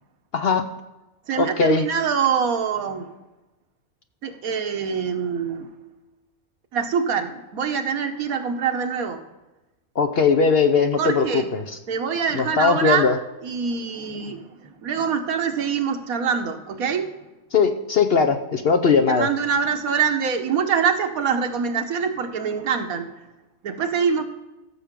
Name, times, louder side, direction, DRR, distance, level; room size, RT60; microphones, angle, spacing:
voice 1, 0.3-0.7 1.4-1.8 10.0-11.6 12.4-13.1 17.5-19.3, left 5 dB, 55° left, 7 dB, 0.8 m, -19 dB
voice 2, 1.3-3.1 4.2-5.7 6.7-9.2 11.0-11.5 11.9-13.1 13.4-17.1 19.1-23.2 23.6-24.2, right 6 dB, 75° right, 6 dB, 1.4 m, -24 dB
15.0 x 7.0 x 3.6 m, 1.0 s
omnidirectional pair, 1.5 m